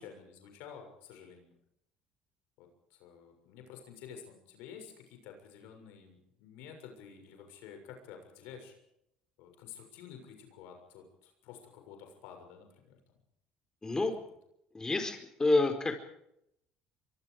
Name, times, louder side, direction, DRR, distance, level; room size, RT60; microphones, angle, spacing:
voice 1, 0.0-1.5 2.6-8.7 9.4-13.0, left 7 dB, 75° left, 5 dB, 6.9 m, -51 dB
voice 2, 13.8-14.1 14.7-16.1, left 2 dB, 20° left, 6 dB, 4.6 m, -29 dB
24.5 x 24.0 x 5.1 m, 0.77 s
supercardioid pair, 80°, 3 cm